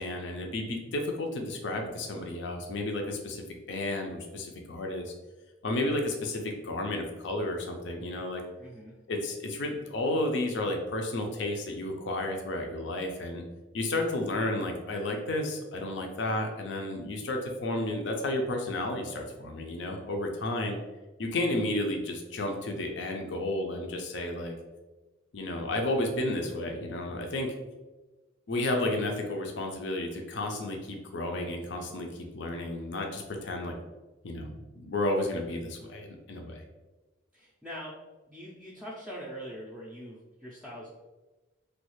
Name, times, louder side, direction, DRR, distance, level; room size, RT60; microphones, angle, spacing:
voice 1, 0.0-5.1 5.6-8.4 9.1-13.4 13.7-20.8 21.2-24.5 25.3-27.5 28.5-33.7 34.2-36.6, left 1 dB, 60° left, 2 dB, 0.5 m, -32 dB
voice 2, 8.6-9.0 37.3-38.0 38.3-40.9, equal, 5° right, -6 dB, 0.4 m, -43 dB
3.2 x 2.3 x 3.1 m, 1.2 s
head